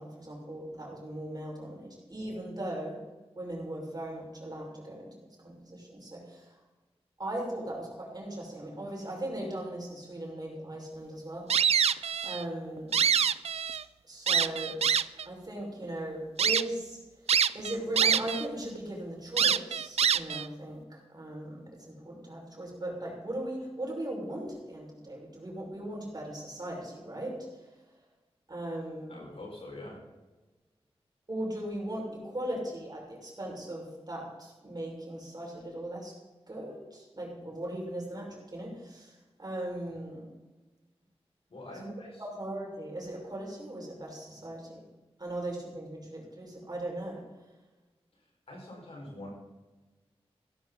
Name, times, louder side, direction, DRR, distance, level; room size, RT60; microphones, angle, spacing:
voice 1, 0.0-3.0 3.4-5.1 5.4-6.6 7.2-13.1 14.1-14.8 15.2-17.0 17.5-27.4 28.5-29.2 31.3-36.1 36.5-40.3 41.7-41.9 42.2-44.8 45.2-47.2, right 1 dB, 40° right, -2 dB, 5.8 m, -38 dB
sound 1, 11.5-12.4 12.8-13.8 14.3-15.2 15.8-15.9 16.4-16.6 17.3-18.4 18.7-18.8 19.4-20.5, right 8 dB, 75° right, 0.4 m, -25 dB
voice 2, 29.1-30.0 41.5-42.2 48.5-49.3, left 1 dB, 65° left, -2 dB, 5.8 m, -44 dB
15.5 x 13.0 x 4.2 m, 1.2 s
cardioid pair, 50°, 11 cm